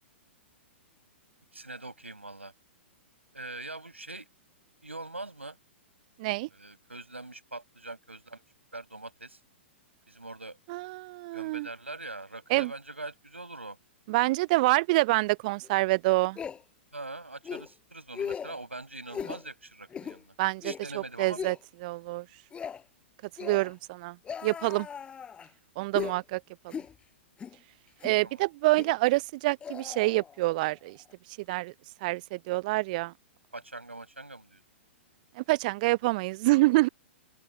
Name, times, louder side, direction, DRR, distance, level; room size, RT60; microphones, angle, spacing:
voice 1, 1.5-2.5 3.3-4.3 4.8-5.6 6.5-8.4 8.7-9.4 10.1-10.6 11.3-13.8 16.9-20.3 20.6-21.4 28.2-28.4 33.5-34.6, right 2 dB, 85° right, 6.4 m, -42 dB
voice 2, 6.2-6.5 10.7-11.7 12.5-12.7 14.1-16.4 20.4-21.6 21.8-22.3 23.4-24.2 24.4-24.9 25.8-26.7 28.0-31.0 31.5-31.7 32.0-33.1 35.4-36.9, right 21 dB, 40° right, 0.5 m, -27 dB
sound 1, 15.6-15.7 16.4-16.6 17.4-17.7 18.1-18.6 19.1-19.5 19.9-20.2 20.6-20.8 21.4-21.6 22.5-22.8 23.4-23.8 24.3-25.5 25.9-26.2 26.7-26.9 27.4-27.6 28.0-28.2 28.8-29.0 29.6-30.7 31.0-31.1, left 7 dB, 15° left, 5.3 m, -38 dB
open air
figure-of-eight pair, 110°, 6 cm